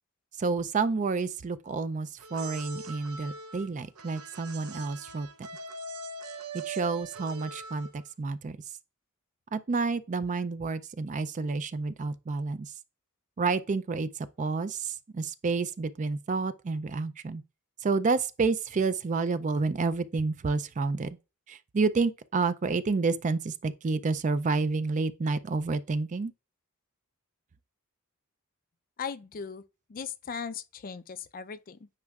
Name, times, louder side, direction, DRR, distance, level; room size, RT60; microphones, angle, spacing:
voice 1, 0.4-5.5 6.5-8.6 9.5-12.7 13.4-17.4 17.8-21.2 21.5-26.3, right 4 dB, 35° right, 0.4 m, -29 dB
sound 1, 2.2-8.1, right 3 dB, 90° right, 0.9 m, -42 dB
voice 2, 29.0-29.6 29.9-31.9, left 6 dB, 40° left, 0.4 m, -38 dB
9.6 x 4.6 x 2.4 m
head